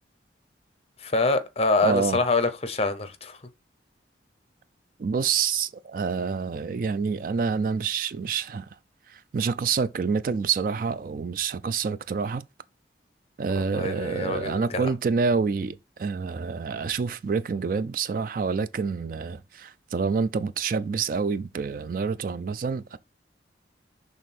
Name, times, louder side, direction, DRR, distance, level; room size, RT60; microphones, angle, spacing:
voice 1, 1.0-3.4 13.5-14.9, left 3 dB, 35° left, 0.7 m, -25 dB
voice 2, 1.8-2.2 5.0-8.7 9.1-12.4 13.4-23.0, right 5 dB, 50° right, 0.3 m, -27 dB
6.5 x 3.5 x 4.2 m
head